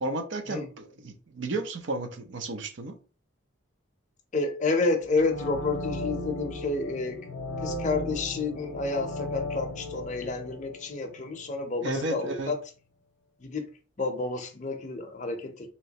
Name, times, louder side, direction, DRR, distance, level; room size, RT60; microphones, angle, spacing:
voice 1, 0.0-3.0 11.8-12.5, right 2 dB, 60° right, 0.5 m, -33 dB
voice 2, 4.3-7.3 7.6-12.6 13.4-13.7 14.0-15.7, left 3 dB, 35° left, 0.5 m, -30 dB
sound 1, 5.0-11.9 12.2-12.3, left 1 dB, 80° left, 0.6 m, -37 dB
3.1 x 2.9 x 2.8 m
head